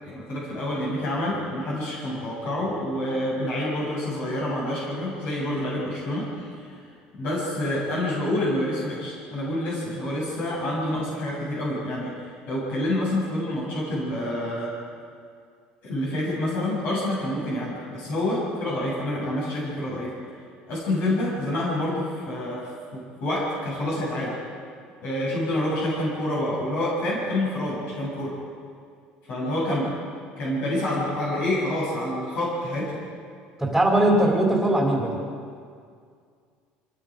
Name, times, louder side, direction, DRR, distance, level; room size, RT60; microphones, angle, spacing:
voice 1, 0.0-6.9 7.2-14.7 15.8-20.1 20.7-22.6 22.9-24.4 25.0-28.3 29.3-29.9 30.4-33.0, left 1 dB, 55° left, -5 dB, 7.6 m, -27 dB
voice 2, 33.6-35.2, right 1 dB, ahead, -2 dB, 3.5 m, -20 dB
26.5 x 21.0 x 5.2 m, 2.2 s
cardioid pair, 150°, 3 cm